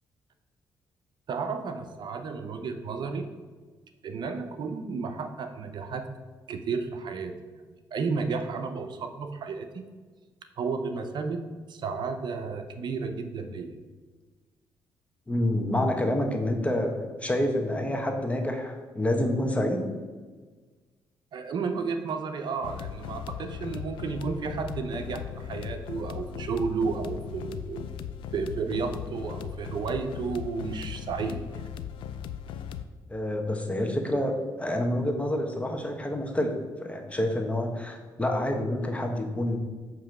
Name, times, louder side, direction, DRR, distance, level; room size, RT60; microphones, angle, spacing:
voice 1, 1.3-3.3 4.0-6.1 6.5-7.3 7.9-9.8 10.6-11.4 11.7-13.8 21.3-27.9 28.3-31.4, right 5 dB, 60° right, 7 dB, 0.7 m, -32 dB
voice 2, 15.3-19.9 33.1-39.6, left 1 dB, 15° left, 3 dB, 1.2 m, -28 dB
sound 1, 22.6-32.8, left 8 dB, 85° left, 0.4 m, -38 dB
7.5 x 3.0 x 5.9 m, 1.4 s
cardioid pair, 70°, 8 cm